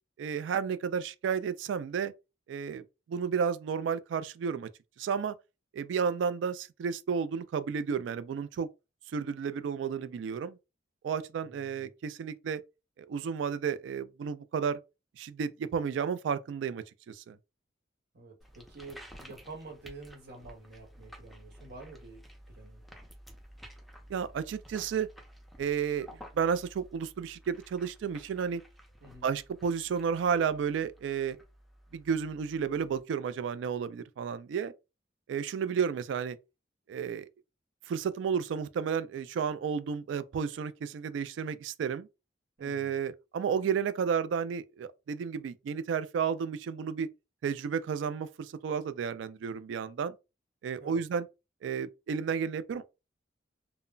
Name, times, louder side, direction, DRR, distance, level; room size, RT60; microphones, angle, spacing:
voice 1, 0.2-2.1 2.5-2.8 3.1-4.7 5.0-5.3 5.7-8.7 9.1-10.6 11.0-12.6 13.0-14.8 15.2-17.4 24.1-25.1 25.6-26.1 26.3-28.6 29.2-31.4 31.9-34.7 35.3-36.4 36.9-37.3 37.9-42.1 42.6-47.1 47.4-50.1 50.6-51.3 51.6-52.8, right 6 dB, 75° right, 0.3 m, -32 dB
voice 2, 11.4-11.9 18.1-22.8 29.0-29.3 42.6-43.0 50.8-51.0, right 3 dB, 60° right, 1.1 m, -49 dB
sound 1, 18.4-33.0, equal, ahead, 0.5 m, -53 dB
2.1 x 2.0 x 3.7 m
head